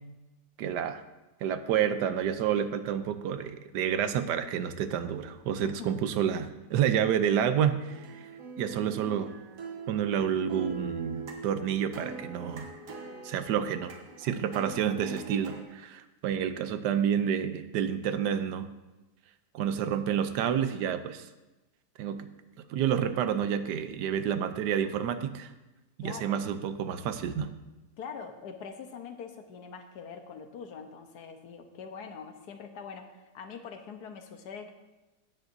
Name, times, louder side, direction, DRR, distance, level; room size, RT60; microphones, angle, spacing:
voice 1, 0.6-1.0 1.4-8.3 8.6-9.3 9.9-12.7 13.2-18.7 19.5-21.2 22.0-22.3 22.7-25.5 26.0-27.5, right 9 dB, 90° right, 10 dB, 1.3 m, -29 dB
voice 2, 5.6-6.0 26.0-26.3 28.0-34.7, left 6 dB, 75° left, 6 dB, 1.4 m, -43 dB
sound 1, 7.9-15.6, right 5 dB, 60° right, 1.5 m, -42 dB
16.5 x 7.5 x 2.6 m, 1.1 s
omnidirectional pair, 1.7 m